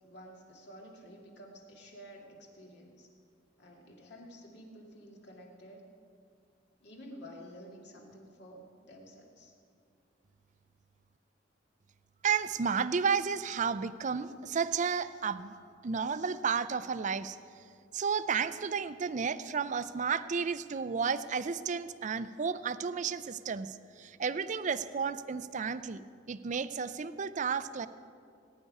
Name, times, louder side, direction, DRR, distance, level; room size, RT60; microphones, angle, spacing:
voice 1, 0.0-3.1 3.6-5.9 6.8-9.6, equal, 60° left, 0 dB, 2.2 m, -51 dB
voice 2, 12.2-15.6 15.8-17.4 17.9-27.9, right 6 dB, 40° right, 14 dB, 0.4 m, -32 dB
19.0 x 9.6 x 5.4 m, 2.3 s
head